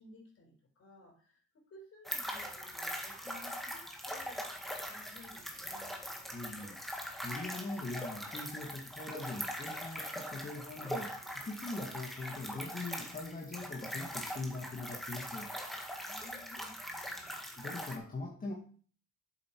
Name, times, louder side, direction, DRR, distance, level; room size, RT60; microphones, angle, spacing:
voice 1, 0.0-6.0 16.0-17.3, left 2 dB, 50° left, 1 dB, 4.5 m, -57 dB
sound 1, 2.0-18.0, equal, ahead, 1.9 m, -42 dB
voice 2, 6.3-6.8 7.2-15.5 17.6-18.5, left 2 dB, 30° left, -1 dB, 1.8 m, -42 dB
7.6 x 7.6 x 4.6 m, 0.43 s
cardioid pair, 90°, 30 cm